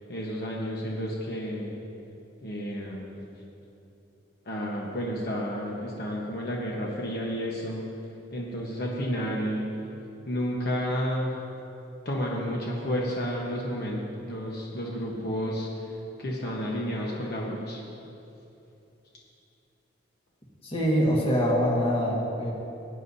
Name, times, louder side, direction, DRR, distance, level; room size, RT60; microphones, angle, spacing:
voice 1, 0.1-1.7 2.4-3.2 4.4-7.9 8.3-9.7 10.3-11.3 12.0-17.8, equal, 60° left, -3 dB, 1.2 m, -31 dB
voice 2, 20.6-22.5, equal, 30° left, -3 dB, 1.7 m, -24 dB
18.0 x 9.7 x 2.7 m, 2.8 s
head